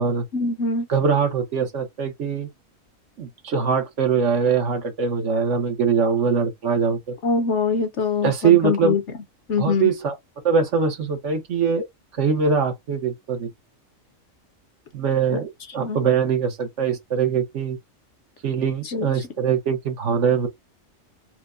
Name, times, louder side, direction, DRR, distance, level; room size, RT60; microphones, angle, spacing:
voice 1, 0.3-0.9 7.2-9.0 9.5-9.9 15.3-15.4 15.8-16.0 18.9-19.1, left 4 dB, 65° left, 1.1 m, -23 dB
voice 2, 0.9-2.5 3.2-7.1 8.2-9.0 9.6-10.1 10.4-11.8 12.1-13.5 14.9-17.8 18.4-20.5, right 6 dB, 65° right, 1.2 m, -22 dB
4.4 x 2.2 x 2.4 m
omnidirectional pair, 1.4 m